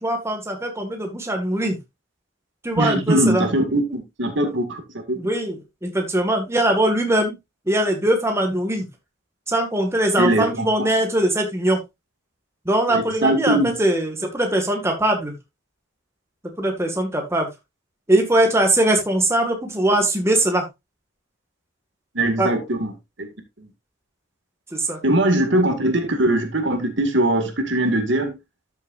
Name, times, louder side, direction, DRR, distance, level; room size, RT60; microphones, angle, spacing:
voice 1, 0.0-1.8 2.6-3.5 4.4-4.6 5.2-7.3 7.7-8.9 9.5-11.8 12.6-15.3 16.6-17.5 18.1-20.6 22.4-22.5 24.7-25.0, right 1 dB, 15° right, 1.8 m, -21 dB
voice 2, 2.8-5.2 10.2-10.9 12.9-13.7 22.2-22.9 23.2-23.3 25.0-28.3, right 1 dB, 60° right, 2.0 m, -21 dB
13.0 x 6.7 x 2.5 m
head